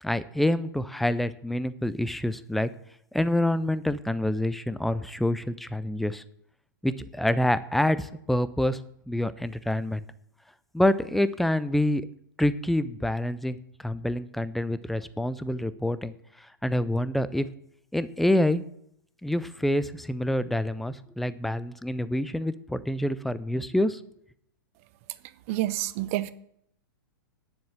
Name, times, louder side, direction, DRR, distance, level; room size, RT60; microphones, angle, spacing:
voice 1, 0.0-2.7 3.1-6.2 6.8-8.8 9.1-10.0 10.7-12.1 12.4-17.5 17.9-18.6 19.2-24.0, left 1 dB, ahead, 0.4 m, -27 dB
voice 2, 25.5-26.3, right 16 dB, 40° right, 0.6 m, -28 dB
10.5 x 7.3 x 7.6 m
figure-of-eight pair, 105°, 11 cm